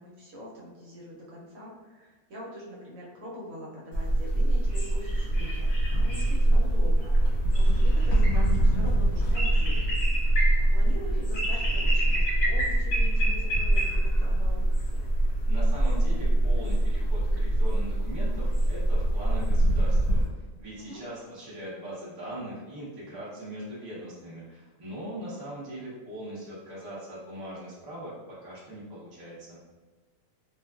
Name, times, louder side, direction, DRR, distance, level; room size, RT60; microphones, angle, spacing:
voice 1, 0.0-7.1 7.5-9.9 10.5-14.6 20.9-21.0, equal, 70° right, -5 dB, 1.1 m, -43 dB
sound 1, 3.9-20.2, right 1 dB, 75° left, 1.3 m, -23 dB
voice 2, 15.5-29.6, right 1 dB, 25° right, -8 dB, 0.5 m, -40 dB
2.5 x 2.3 x 2.3 m, 1.3 s
omnidirectional pair, 1.6 m